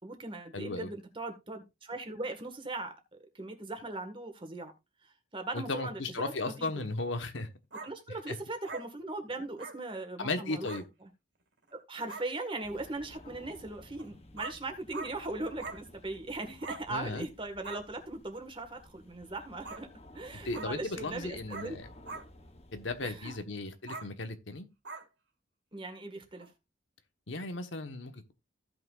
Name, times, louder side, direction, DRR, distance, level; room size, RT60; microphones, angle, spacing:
voice 1, 0.0-2.9 3.3-4.7 5.0-6.8 7.7-10.7 11.7-19.9 20.1-21.7 23.0-23.4 25.7-26.5, right 2 dB, 25° right, 1.7 m, -39 dB
voice 2, 0.5-0.9 5.5-7.5 8.3-8.4 10.2-10.8 16.9-17.3 20.4-21.9 22.7-24.7 27.3-28.3, left 2 dB, 70° left, 1.3 m, -36 dB
sound 1, 7.7-7.9 8.6-8.8 9.6-9.7 10.6-10.8 11.7-11.8 12.1-12.3 13.9-14.0 14.4-14.5 14.9-15.1 15.6-15.8 16.6-16.8 17.6-17.8 19.6-19.8 20.5-20.7 21.5-21.7 22.1-22.2 23.2-23.4 23.9-24.1 24.8-25.0 26.4-26.5, right 3 dB, 65° right, 2.3 m, -42 dB
sound 2, 12.6-23.4, left 1 dB, 30° left, 1.0 m, -54 dB
15.5 x 5.9 x 2.5 m
head